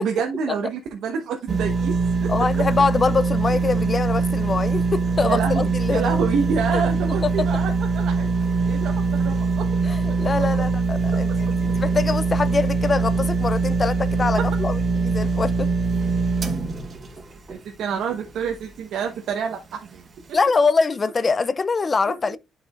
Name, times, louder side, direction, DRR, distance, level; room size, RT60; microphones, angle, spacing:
voice 1, 0.0-2.6 5.2-8.3 8.7-9.7 10.1-10.2 11.1-11.2 17.5-20.0 20.3-20.4 22.1-22.4, right 6 dB, 80° right, 1.1 m, -28 dB
sound 1, 1.5-18.7 19.2-19.3, right 4 dB, 40° right, 1.0 m, -23 dB
voice 2, 2.3-6.3 6.7-6.8 7.2-7.3 9.8-15.7 20.3-22.4, left 4 dB, 35° left, 0.4 m, -23 dB
10.5 x 4.8 x 2.4 m
cardioid pair, 90°, 0 cm